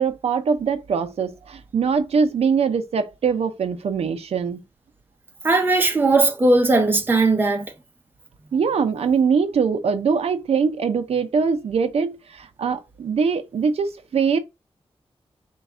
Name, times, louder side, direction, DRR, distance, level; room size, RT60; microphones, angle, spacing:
voice 1, 0.0-4.6 8.5-14.4, right 6 dB, 90° right, 0.5 m, -22 dB
voice 2, 5.4-7.7, right 2 dB, 20° right, 0.6 m, -18 dB
4.1 x 2.3 x 3.5 m
wide cardioid pair, 155°, 10 cm